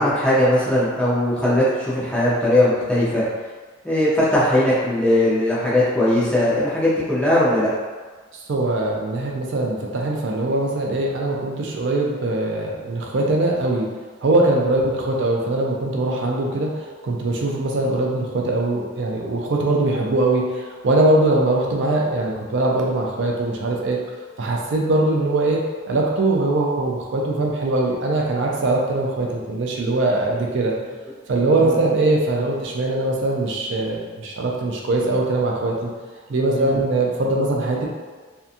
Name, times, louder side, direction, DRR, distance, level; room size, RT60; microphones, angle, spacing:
voice 1, 0.0-3.2 3.8-7.7 31.6-31.7 36.5-36.8, left 1 dB, 5° left, -10 dB, 0.6 m, -19 dB
voice 2, 8.5-13.9 14.2-24.0 24.4-25.6 25.9-30.7 31.3-35.9 36.3-37.9, right 2 dB, 60° right, -2 dB, 0.4 m, -21 dB
2.7 x 2.3 x 2.5 m, 1.4 s
head